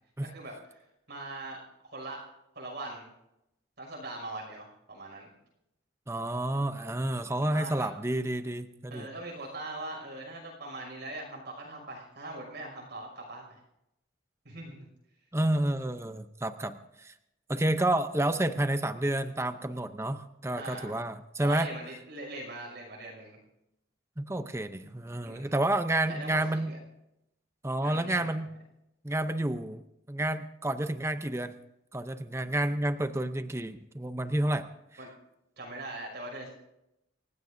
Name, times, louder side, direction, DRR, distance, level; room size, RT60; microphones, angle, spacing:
voice 1, 0.2-1.6 1.9-2.2 2.5-3.1 3.8-5.3 7.4-7.9 8.9-13.6 14.4-14.9 20.6-21.0 21.4-23.4 25.2-25.5 26.1-26.8 27.8-28.4 35.0-35.1 35.6-36.5, right 2 dB, 55° right, -1 dB, 5.8 m, -41 dB
voice 2, 6.1-9.1 15.3-17.1 17.5-21.7 24.2-26.7 27.6-28.5 29.0-29.8 30.1-31.5 31.9-34.7, right 1 dB, 15° right, 9 dB, 0.6 m, -30 dB
28.0 x 16.0 x 2.6 m, 0.86 s
head